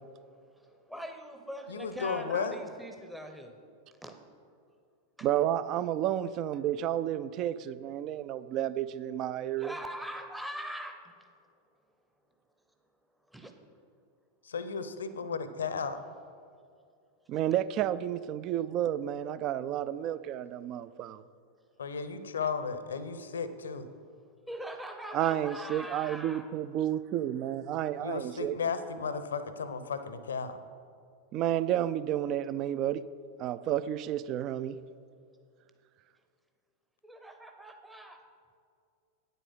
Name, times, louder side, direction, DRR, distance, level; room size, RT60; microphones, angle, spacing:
voice 1, 0.3-3.5 4.0-4.2 5.2-5.3 9.4-11.3 13.3-13.5 24.5-26.5 37.0-38.2, equal, 5° right, 0.7 m, -42 dB
voice 2, 1.7-2.6 14.4-16.0 21.8-23.9 28.0-30.6, left 5 dB, 70° left, 0.6 m, -34 dB
voice 3, 5.2-9.7 17.3-21.2 25.1-28.5 31.3-33.0 33.4-34.8, right 11 dB, 35° right, 0.3 m, -31 dB
9.0 x 8.1 x 5.5 m
figure-of-eight pair, 90°, 0 cm